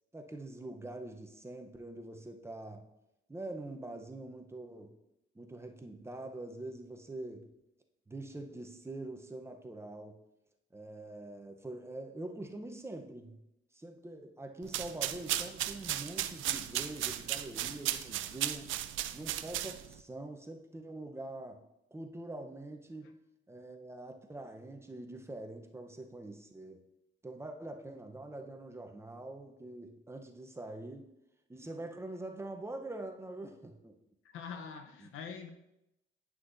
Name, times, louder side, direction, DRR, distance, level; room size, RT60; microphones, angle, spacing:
voice 1, 0.1-2.9 3.3-5.0 5.3-7.5 8.1-10.2 10.7-13.4 13.7-18.7 19.1-21.6 21.9-23.2 23.5-26.8 27.2-31.1 31.5-34.0 35.0-35.1, right 2 dB, 15° right, 4 dB, 0.7 m, -44 dB
sound 1, 14.6-20.0, right 13 dB, 80° right, 0.4 m, -36 dB
voice 2, 34.2-35.5, left 6 dB, 85° left, 6 dB, 0.8 m, -44 dB
9.6 x 6.1 x 2.6 m, 0.88 s
cardioid pair, 90°, 20 cm